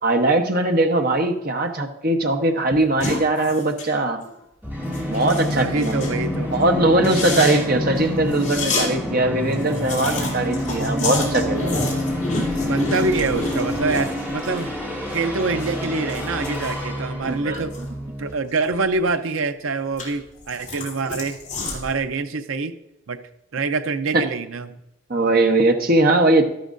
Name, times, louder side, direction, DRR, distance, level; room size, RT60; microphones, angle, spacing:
voice 1, 0.0-4.2 5.1-6.0 6.5-11.8 17.3-17.8 24.1-24.2 25.1-26.4, right 2 dB, 45° right, 4 dB, 1.0 m, -20 dB
sound 1, 3.0-3.9 4.2-4.4 4.8-6.2 6.5-6.6 6.9-8.9 9.2-9.3 9.5-14.6 15.0-17.9 18.2-19.2 19.6-22.0, left 3 dB, 35° left, 3.6 m, -30 dB
Musical instrument, 4.6-18.3, left 1 dB, 10° right, 1.9 m, -27 dB
voice 2, 5.5-6.5 7.2-7.6 12.6-14.7 15.1-17.8 18.2-21.4 21.7-22.7 23.1-23.2 23.5-24.8, right 3 dB, 70° right, 9 dB, 0.6 m, -25 dB
12.5 x 11.5 x 2.6 m, 0.84 s
head